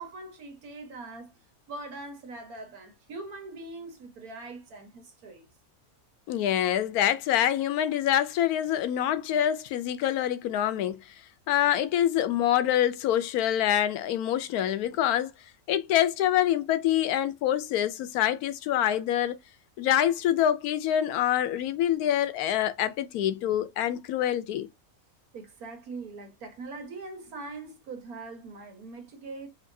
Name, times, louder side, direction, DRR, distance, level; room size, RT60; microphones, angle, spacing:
voice 1, 0.0-1.3 1.7-5.5 25.3-29.5, right 3 dB, 80° right, 1.7 m, -42 dB
voice 2, 6.3-11.0 11.5-15.3 15.7-19.4 19.8-24.7, left 11 dB, 85° left, 1.1 m, -26 dB
5.5 x 2.6 x 2.6 m
omnidirectional pair, 1.6 m